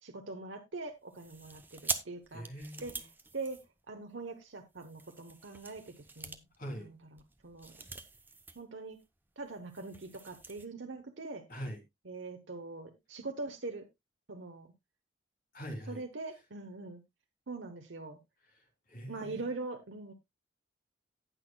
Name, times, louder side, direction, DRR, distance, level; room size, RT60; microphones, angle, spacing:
voice 1, 0.0-6.5 6.8-7.8 8.5-9.0 9.4-11.4 12.0-13.9 14.3-14.7 15.9-17.0 17.5-18.2 19.0-20.1, right 3 dB, 65° right, 1.0 m, -43 dB
sound 1, 1.1-4.2 4.7-8.7 8.9-9.1 9.4-10.7, right 3 dB, 10° right, 0.7 m, -44 dB
voice 2, 2.3-3.1 6.6-6.9 11.5-11.8 15.5-16.0 18.5-19.4, equal, 45° left, 3.3 m, -43 dB
18.0 x 6.2 x 2.2 m
head